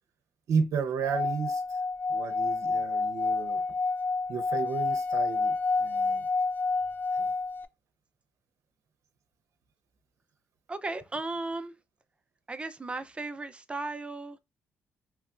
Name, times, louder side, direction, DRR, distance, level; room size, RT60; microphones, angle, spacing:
voice 1, 0.5-1.6 2.1-3.6 4.3-6.3 7.1-7.3, right 6 dB, 70° right, 0.7 m, -32 dB
Singing / Glass, 1.0-7.6, left 3 dB, 35° left, 0.4 m, -29 dB
voice 2, 10.7-11.7 12.5-14.4, right 2 dB, 20° right, 0.5 m, -35 dB
3.4 x 3.1 x 2.5 m
cardioid pair, 75°, 5 cm